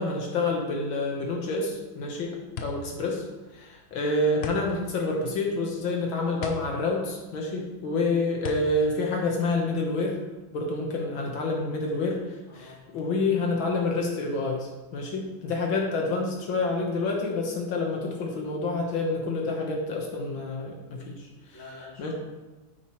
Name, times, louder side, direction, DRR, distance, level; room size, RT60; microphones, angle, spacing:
voice 1, 0.0-2.4 2.6-3.3 3.5-10.2 10.5-21.6 22.0-22.1, left 2 dB, 70° left, 0 dB, 1.9 m, -28 dB
sound 1, 1.9-10.1, left 3 dB, 90° left, 0.5 m, -40 dB
voice 2, 12.5-12.8 15.5-15.7 21.5-22.1, left 2 dB, 10° left, -5 dB, 2.3 m, -47 dB
9.3 x 8.9 x 3.1 m, 1.2 s
omnidirectional pair, 2.2 m